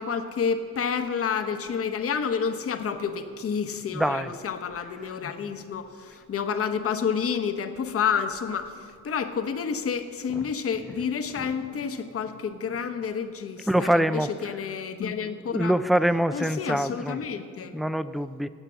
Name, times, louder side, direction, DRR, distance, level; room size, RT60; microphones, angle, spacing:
voice 1, 0.0-15.7 16.3-17.7, left 6 dB, 50° left, 8 dB, 1.0 m, -29 dB
voice 2, 3.9-4.3 10.4-10.5 13.7-14.3 15.5-17.2 17.7-18.5, right 1 dB, ahead, 13 dB, 0.3 m, -24 dB
8.8 x 8.2 x 8.5 m, 2.2 s
cardioid pair, 90°, 30 cm